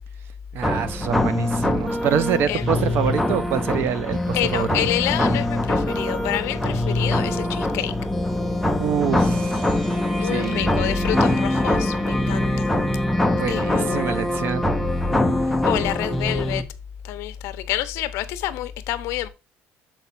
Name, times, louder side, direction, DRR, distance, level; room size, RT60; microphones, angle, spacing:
voice 1, 0.5-4.7 8.8-10.7 13.4-14.7, right 8 dB, 50° right, 0.6 m, -26 dB
sound 1, 0.6-16.6, left 1 dB, ahead, 0.6 m, -23 dB
voice 2, 2.5-3.2 4.3-7.9 10.1-12.8 13.5-14.5 15.5-16.6 17.0-19.3, left 13 dB, 65° left, 0.7 m, -28 dB
7.1 x 4.5 x 4.2 m
cardioid pair, 175°, 5 cm